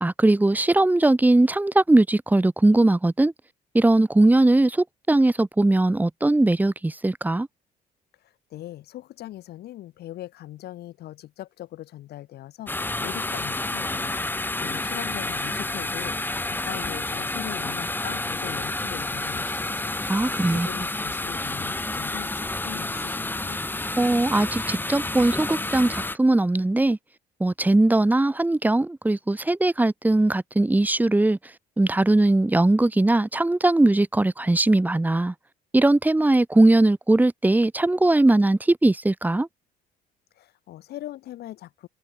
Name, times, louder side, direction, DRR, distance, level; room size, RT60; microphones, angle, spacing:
voice 1, 0.0-3.3 3.7-7.5 20.1-20.7 24.0-27.0 27.4-31.4 31.8-35.3 35.7-39.5, right 2 dB, 10° right, 1.7 m, -20 dB
voice 2, 8.2-19.9 20.5-23.6 40.4-41.9, left 14 dB, 70° left, 5.4 m, -40 dB
sound 1, 12.7-26.2, left 2 dB, 10° left, 2.5 m, -29 dB
cardioid pair, 110°, 17 cm